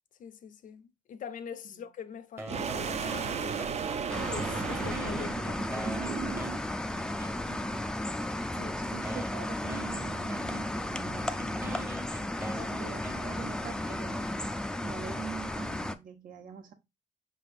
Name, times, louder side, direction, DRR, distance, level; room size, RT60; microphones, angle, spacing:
voice 1, 0.2-3.8 4.3-6.5 8.6-8.8 12.2-12.9, left 7 dB, 70° left, 0.6 m, -44 dB
sound 1, 2.4-4.2 4.5-7.7 8.5-8.6 9.0-14.4, right 1 dB, 15° right, 0.8 m, -45 dB
sound 2, 2.5-6.8, right 6 dB, 50° right, 0.5 m, -35 dB
sound 3, 4.1-16.0, left 1 dB, 5° left, 0.3 m, -34 dB
voice 2, 7.5-7.9 8.6-11.6 12.5-16.7, right 7 dB, 80° right, 1.1 m, -44 dB
5.5 x 3.4 x 2.5 m
wide cardioid pair, 145°, 14 cm